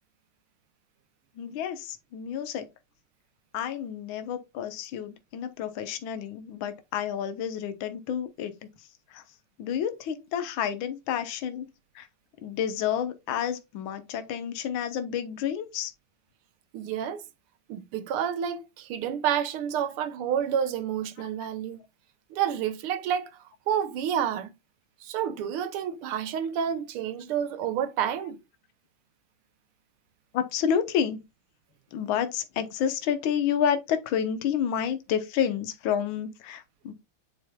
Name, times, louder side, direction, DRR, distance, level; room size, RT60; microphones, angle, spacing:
voice 1, 1.4-2.6 3.5-8.5 9.1-9.2 9.6-11.7 12.0-12.1 12.4-15.9 30.3-31.2 31.9-36.9, left 8 dB, 70° left, 1.6 m, -29 dB
voice 2, 16.7-17.2 17.7-21.8 22.3-23.3 23.7-24.5 25.0-28.4, right 9 dB, 85° right, 1.7 m, -29 dB
9.8 x 4.4 x 2.3 m
omnidirectional pair, 2.3 m